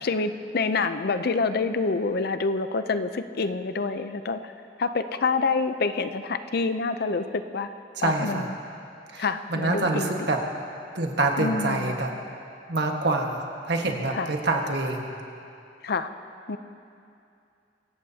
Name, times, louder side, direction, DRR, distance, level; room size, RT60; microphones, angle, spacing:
voice 1, 0.0-4.5 4.8-7.7 8.0-8.6 9.2-10.3 11.4-11.9 14.1-14.3 15.8-16.1 16.5-16.6, left 4 dB, 60° left, 10 dB, 0.6 m, -27 dB
voice 2, 8.0-8.4 9.1-9.2 9.5-10.4 10.9-12.1 12.7-15.2, right 2 dB, 65° right, 2 dB, 1.5 m, -26 dB
23.0 x 17.5 x 2.8 m, 2.6 s
head